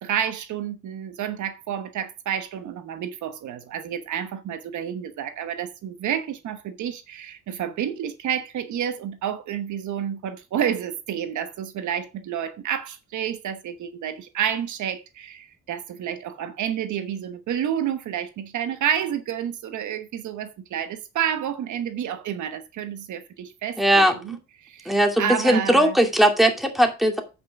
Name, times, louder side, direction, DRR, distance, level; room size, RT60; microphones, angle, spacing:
voice 1, 0.0-26.0, right 9 dB, 75° right, 1.1 m, -30 dB
voice 2, 23.8-24.4 24.9-27.2, equal, ahead, 2.4 m, -19 dB
8.4 x 5.6 x 5.9 m
cardioid pair, 90°, 30 cm